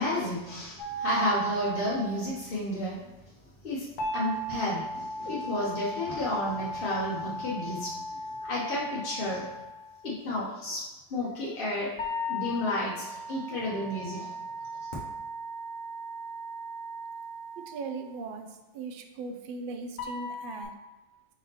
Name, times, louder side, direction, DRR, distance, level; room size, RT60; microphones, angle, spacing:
voice 1, 0.0-3.0 3.6-3.9 4.1-7.9 8.4-9.5 10.0-10.8 11.1-11.9 12.3-14.3, left 1 dB, 50° left, -6 dB, 1.0 m, -31 dB
sound 1, 0.8-2.3 4.0-10.0 12.0-18.1 20.0-20.6, right 1 dB, 80° left, 1.1 m, -37 dB
voice 2, 17.6-20.7, right 4 dB, 60° right, 5 dB, 0.6 m, -39 dB
4.8 x 3.9 x 2.8 m, 1.1 s
omnidirectional pair, 1.2 m